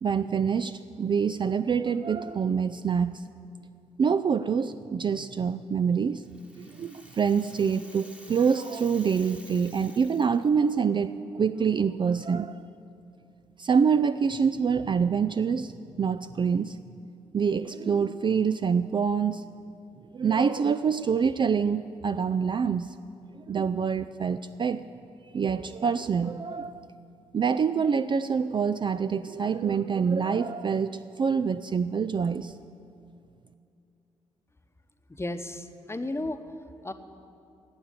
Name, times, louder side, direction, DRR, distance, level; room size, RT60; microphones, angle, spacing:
voice 1, 0.0-3.2 4.0-6.2 6.6-12.7 13.6-16.8 17.3-19.5 20.1-23.0 23.3-24.8 25.3-26.9 27.3-32.5, right 6 dB, 35° right, 11 dB, 0.4 m, -26 dB
Rattle (instrument), 6.0-10.7, equal, 10° right, 1.3 m, -51 dB
voice 2, 35.1-36.4 36.8-36.9, left 2 dB, 15° left, 8 dB, 1.0 m, -33 dB
12.0 x 8.0 x 9.9 m, 2.5 s
hypercardioid pair, 40°, 15 cm